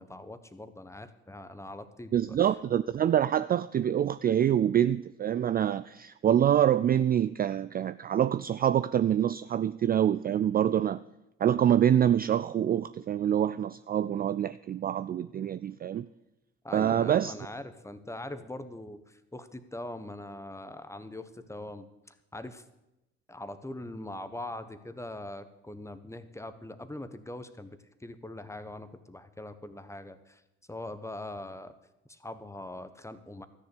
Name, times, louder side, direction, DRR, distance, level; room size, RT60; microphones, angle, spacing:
voice 1, 0.0-2.1 16.6-21.9 22.3-22.6 23.3-30.4 30.7-31.7 32.1-33.5, left 1 dB, 10° left, 1.2 m, -42 dB
voice 2, 2.1-11.0 11.4-16.1 16.7-17.3, right 10 dB, 30° right, 0.4 m, -26 dB
13.5 x 6.7 x 8.5 m
hypercardioid pair, 60°, 32 cm